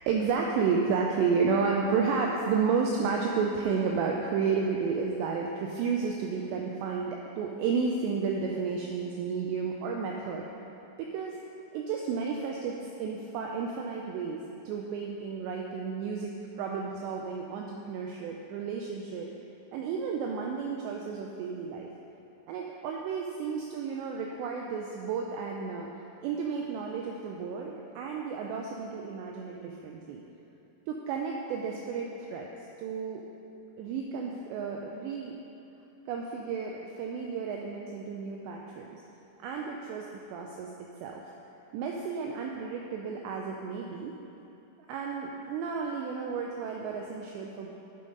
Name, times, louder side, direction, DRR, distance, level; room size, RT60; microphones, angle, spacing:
voice 1, 0.0-10.5 11.0-11.4 11.7-19.3 19.7-21.9 22.5-25.9 26.2-30.2 30.9-32.5 32.8-33.2 33.8-35.4 36.1-39.0 39.4-40.7 41.0-41.2 41.7-44.2 44.9-47.7, right 5 dB, 90° right, 0 dB, 2.5 m, -32 dB
9.3 x 5.4 x 5.2 m, 2.8 s
omnidirectional pair, 5.6 m